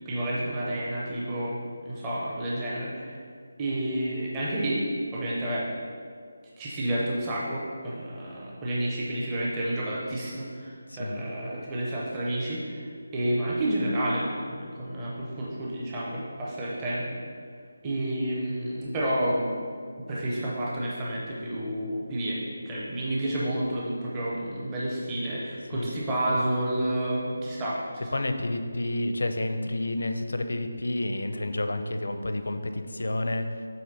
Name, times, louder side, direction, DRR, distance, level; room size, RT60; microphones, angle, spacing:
voice 1, 0.1-1.6 1.8-3.2 3.6-4.8 5.1-5.7 6.6-12.8 13.1-17.1 17.8-19.5 20.1-22.4 22.7-28.1, right 1 dB, 10° right, -6 dB, 0.5 m, -30 dB
voice 2, 10.9-11.2 25.7-25.9 28.1-33.5, left 1 dB, 70° left, 8 dB, 0.5 m, -30 dB
7.9 x 3.0 x 5.2 m, 2.1 s
figure-of-eight pair, 180°, 0 cm